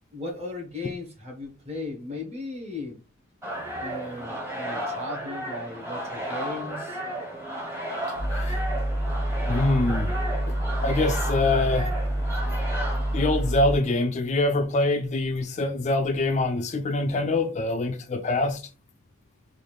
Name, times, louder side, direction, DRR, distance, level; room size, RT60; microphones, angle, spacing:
voice 1, 0.1-3.0 3.8-7.0, left 2 dB, 30° right, 1.2 m, -36 dB
sound 1, 3.4-13.9, right 1 dB, 10° right, 1.0 m, -34 dB
sound 2, 8.2-13.8, right 1 dB, 60° right, 0.7 m, -27 dB
voice 2, 9.5-10.1 10.5-10.6 10.8-11.9 13.1-18.6, left 2 dB, 35° left, 0.4 m, -24 dB
3.8 x 2.4 x 3.2 m
head